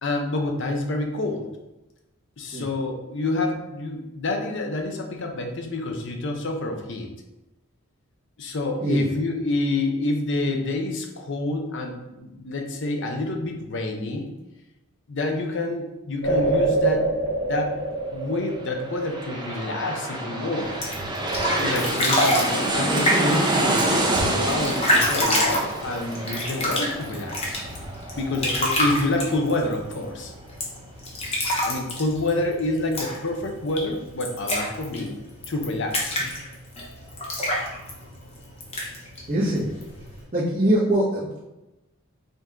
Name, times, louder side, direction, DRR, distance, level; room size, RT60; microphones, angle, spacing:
voice 1, 0.0-1.5 2.4-7.1 8.4-14.3 15.1-17.1 17.4-17.8 18.1-20.7 21.5-27.6 28.1-30.3 31.7-35.1 35.5-36.2, left 2 dB, 55° left, 3 dB, 0.7 m, -28 dB
sound 1, 16.2-19.8, right 2 dB, 80° left, 1.3 m, -25 dB
sound 2, 18.7-30.0 30.4-30.5, right 1 dB, 20° right, 0.6 m, -27 dB
sound 3, 20.6-40.2, left 1 dB, 30° left, 0.9 m, -28 dB
voice 2, 39.3-39.7 40.3-41.4, right 1 dB, 40° right, -12 dB, 1.3 m, -22 dB
5.3 x 2.7 x 3.6 m, 0.99 s
head